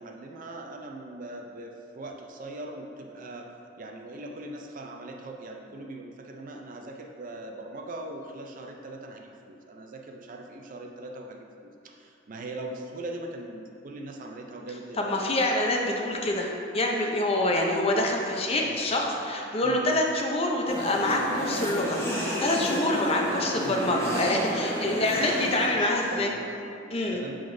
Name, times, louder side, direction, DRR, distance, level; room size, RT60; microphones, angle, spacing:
voice 1, 0.0-3.5 3.8-15.3 15.8-15.9 18.4-19.9 23.6-26.8 27.1-27.4, right 2 dB, 40° right, 2 dB, 0.5 m, -41 dB
voice 2, 15.0-26.3 26.9-27.2, left 1 dB, 30° left, 1 dB, 0.6 m, -26 dB
sound 1, 20.7-25.7, equal, 15° left, 1.0 m, -31 dB
10.5 x 3.9 x 2.6 m, 2.5 s
head